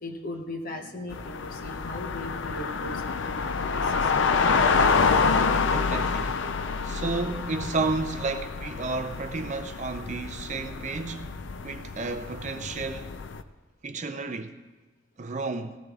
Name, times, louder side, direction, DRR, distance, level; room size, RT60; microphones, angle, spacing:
voice 1, 0.0-4.1 13.9-14.1, left 1 dB, 40° left, 1.0 m, -39 dB
sound 1, 1.1-13.4, left 4 dB, 60° left, 0.5 m, -27 dB
voice 2, 5.6-6.4 6.8-13.1 13.8-14.5 15.2-15.8, right 3 dB, 35° right, 0.5 m, -32 dB
18.5 x 15.0 x 2.4 m
head